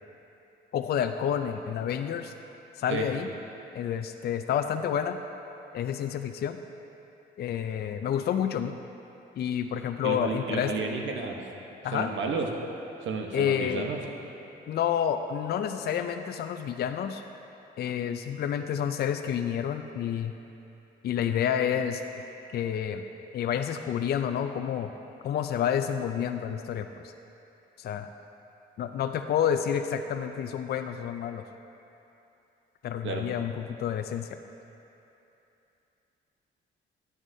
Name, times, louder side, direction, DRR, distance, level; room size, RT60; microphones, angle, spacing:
voice 1, 0.7-2.3 2.8-3.3 3.7-5.2 5.7-6.6 7.4-8.8 9.4-10.9 11.8-12.1 13.3-13.8 14.7-17.2 17.8-20.3 21.0-22.0 22.5-23.0 23.3-24.9 25.2-26.9 27.8-28.1 28.8-31.4 32.8-34.4, left 9 dB, 55° left, 7 dB, 0.4 m, -29 dB
voice 2, 10.0-11.4 11.9-12.5 13.0-14.0 33.0-33.3, right 4 dB, 75° right, 2 dB, 1.1 m, -32 dB
12.0 x 9.6 x 2.7 m, 2.9 s
cardioid pair, 90°, 20 cm